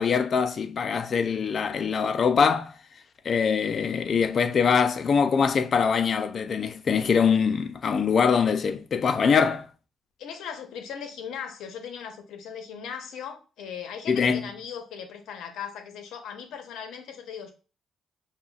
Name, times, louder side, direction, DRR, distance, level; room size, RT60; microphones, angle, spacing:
voice 1, 0.0-2.7 3.2-9.7 14.1-14.4, left 6 dB, 50° left, 0.4 m, -23 dB
voice 2, 10.2-17.5, left 7 dB, 85° left, 0.8 m, -38 dB
5.4 x 2.4 x 2.4 m
cardioid pair, 90°, 0 cm